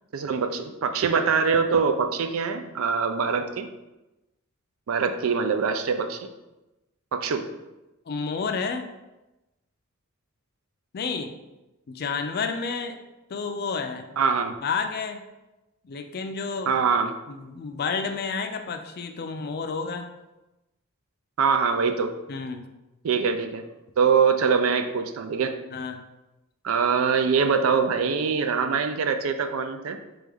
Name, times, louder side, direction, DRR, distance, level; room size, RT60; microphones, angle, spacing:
voice 1, 0.1-3.7 4.9-6.3 7.1-7.5 14.2-14.5 16.7-17.1 21.4-22.1 23.0-23.6 24.0-25.6 26.6-30.0, right 5 dB, 75° right, 7 dB, 0.4 m, -23 dB
voice 2, 8.1-8.9 10.9-11.3 11.9-13.0 13.3-14.1 14.6-15.2 15.8-16.7 17.3-20.1 22.3-22.7 25.7-26.0, left 5 dB, 50° left, 6 dB, 0.4 m, -30 dB
4.1 x 3.4 x 3.5 m, 1.0 s
head